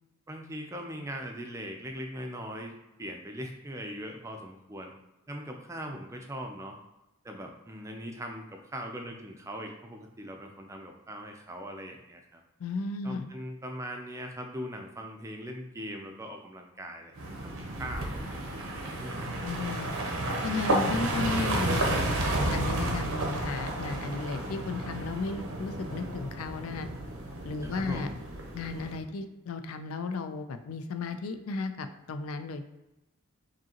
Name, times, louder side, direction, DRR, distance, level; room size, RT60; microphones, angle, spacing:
voice 1, 0.3-2.7 3.0-4.9 5.3-6.8 7.2-12.4 13.0-17.1 17.4-18.4 19.0-19.2 27.6-28.2, equal, 15° right, 3 dB, 0.4 m, -40 dB
voice 2, 12.6-13.3 19.4-20.0 20.4-26.9 27.4-28.1 28.5-32.6, left 4 dB, 80° left, 9 dB, 0.4 m, -34 dB
sound 1, 17.2-29.0, right 1 dB, 75° right, 0.8 m, -32 dB
5.0 x 2.8 x 2.9 m, 0.97 s
head